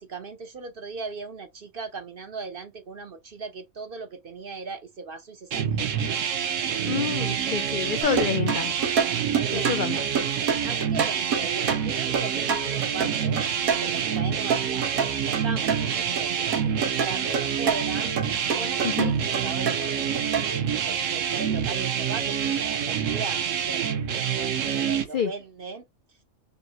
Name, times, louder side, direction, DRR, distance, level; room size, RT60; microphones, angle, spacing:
voice 1, 0.0-5.9 9.3-10.1 10.6-13.5 13.7-18.2 18.5-20.4 20.7-23.8 24.4-25.8, right 4 dB, 50° right, 0.7 m, -38 dB
sound 1, 5.5-25.0, right 8 dB, 70° right, 1.1 m, -27 dB
voice 2, 6.8-8.7 9.5-10.0 18.8-19.1 25.1-25.3, left 7 dB, 70° left, 0.4 m, -28 dB
sound 2, 8.0-14.2 14.5-16.3 16.5-20.5, right 6 dB, 85° right, 1.5 m, -28 dB
5.5 x 2.1 x 2.7 m
omnidirectional pair, 1.4 m